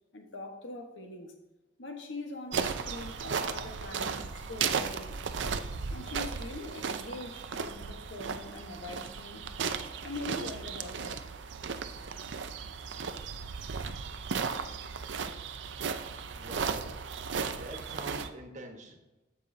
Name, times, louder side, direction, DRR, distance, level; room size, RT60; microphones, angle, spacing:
voice 1, 0.1-1.3 1.8-5.2 5.9-9.5 10.0-11.2 14.3-14.4, left 2 dB, 90° left, 1.2 m, -43 dB
sound 1, 2.5-18.3, right 5 dB, 75° right, 0.5 m, -35 dB
voice 2, 16.3-17.0 17.5-19.0, right 1 dB, 40° right, 1.3 m, -44 dB
15.0 x 5.5 x 2.7 m
head